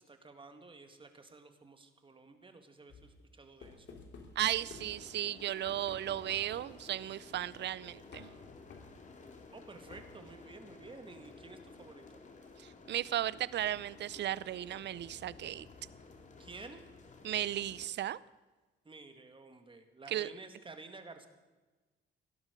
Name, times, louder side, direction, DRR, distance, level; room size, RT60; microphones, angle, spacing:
voice 1, 0.0-4.0 9.5-12.2 16.4-16.8 18.8-21.3, right 3 dB, 25° right, 7 dB, 2.0 m, -52 dB
sound 1, 2.9-5.3 5.7-6.9 8.1-9.1 9.9-10.4, left 4 dB, 65° left, 2.8 m, -53 dB
voice 2, 4.4-8.3 12.6-15.7 17.2-18.2 20.1-20.3, right 12 dB, 60° right, 20 dB, 0.6 m, -35 dB
sound 2, 4.6-17.9, left 3 dB, 40° left, 2.3 m, -54 dB
17.5 x 11.5 x 5.2 m, 1.2 s
cardioid pair, 90°, 20 cm